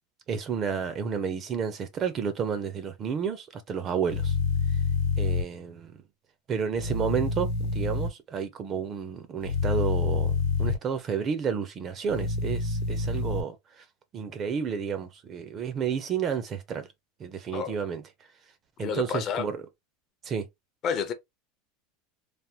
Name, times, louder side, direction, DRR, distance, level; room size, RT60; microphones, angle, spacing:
voice 1, 0.3-4.4 5.2-6.0 6.5-13.8 14.1-16.9 17.2-18.0 18.8-19.6 20.2-20.5, right 7 dB, 25° right, 0.4 m, -31 dB
sound 1, 4.1-5.4 6.8-8.1 9.4-10.8 12.1-13.4, left 4 dB, 60° left, 0.7 m, -27 dB
voice 2, 18.8-19.5 20.8-21.1, left 7 dB, 30° left, 0.5 m, -29 dB
3.3 x 2.1 x 2.7 m
supercardioid pair, 170°, 0 cm